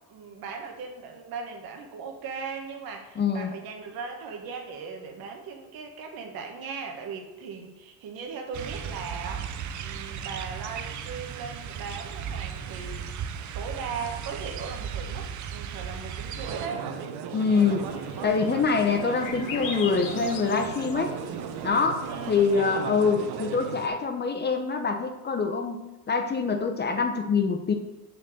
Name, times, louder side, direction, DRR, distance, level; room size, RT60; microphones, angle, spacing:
voice 1, 0.1-9.5 9.8-16.9 22.0-22.7, right 5 dB, 70° right, 2 dB, 1.6 m, -38 dB
voice 2, 3.2-3.5 17.3-17.9 18.2-21.1 21.6-22.0 22.3-27.7, left 5 dB, 25° left, 5 dB, 0.7 m, -25 dB
sound 1, 8.5-16.7, right 8 dB, 50° right, 0.7 m, -36 dB
sound 2, 16.5-23.9, right 7 dB, 85° right, 0.9 m, -36 dB
sound 3, 17.5-22.5, left 6 dB, 55° left, 1.1 m, -41 dB
6.5 x 4.5 x 6.6 m, 1.0 s
cardioid pair, 130°, 38 cm